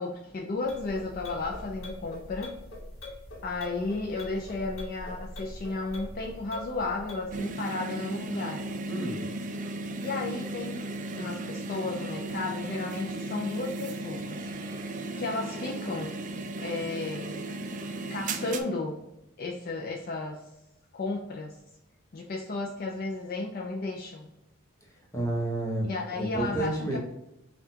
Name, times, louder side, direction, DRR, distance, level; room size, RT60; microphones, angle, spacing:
voice 1, 0.0-2.5 3.4-8.6 10.0-10.8 11.2-14.4 15.2-16.2 16.6-17.4 18.1-19.0 19.4-20.4 20.9-21.6 22.1-24.3 25.8-27.0, left 3 dB, 45° left, 0 dB, 0.5 m, -33 dB
sound 1, 0.6-7.5, left 1 dB, 85° left, 1.3 m, -42 dB
sound 2, 7.3-18.6, right 2 dB, 40° right, 0.4 m, -36 dB
voice 2, 8.9-9.2 25.1-25.9 26.2-27.0, right 2 dB, 15° left, -2 dB, 1.0 m, -30 dB
5.5 x 2.4 x 2.8 m, 0.88 s
head